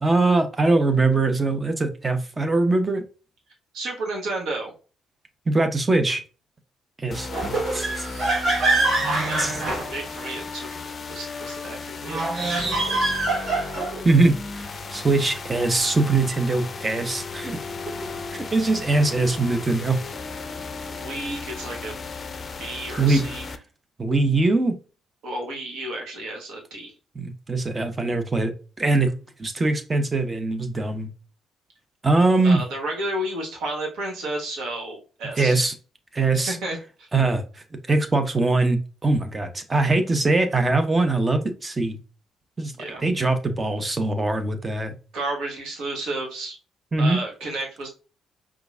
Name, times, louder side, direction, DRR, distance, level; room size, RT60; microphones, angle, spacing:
voice 1, 0.0-3.0 5.5-6.2 7.0-7.3 7.7-8.1 9.4-9.6 14.0-17.6 18.3-20.0 23.0-23.2 24.0-24.8 27.1-28.5 28.8-29.1 29.4-31.1 32.0-32.6 35.4-35.7 36.1-36.6 37.1-42.0 42.6-42.7 43.0-44.9 46.9-47.2, right 2 dB, 25° right, 7 dB, 0.9 m, -22 dB
voice 2, 3.7-4.7 9.2-13.1 20.9-22.0 22.6-23.4 25.2-26.9 32.4-35.6 36.5-37.1 42.8-43.0 45.1-46.6 47.0-47.9, right 2 dB, 60° right, 0 dB, 1.5 m, -32 dB
sound 1, 7.1-23.6, left 4 dB, 35° left, 0.5 m, -35 dB
sound 2, 7.3-10.4 12.0-14.0, right 2 dB, 45° right, 1.5 m, -24 dB
5.0 x 3.6 x 2.5 m, 0.35 s
figure-of-eight pair, 45°, 0 cm